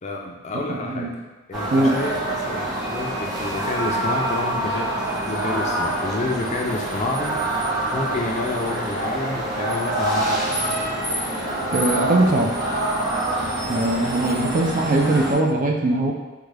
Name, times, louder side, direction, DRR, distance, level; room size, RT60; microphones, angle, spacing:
voice 1, 0.0-1.1 1.5-7.4 7.9-10.6, left 2 dB, 35° left, -1 dB, 0.4 m, -29 dB
voice 2, 0.5-1.1 1.7-2.0 11.7-12.5 13.7-16.1, right 2 dB, 40° right, 1 dB, 0.3 m, -21 dB
sound 1, 1.5-15.3, right 1 dB, 20° right, 1.1 m, -26 dB
3.6 x 2.2 x 3.2 m, 1.2 s
head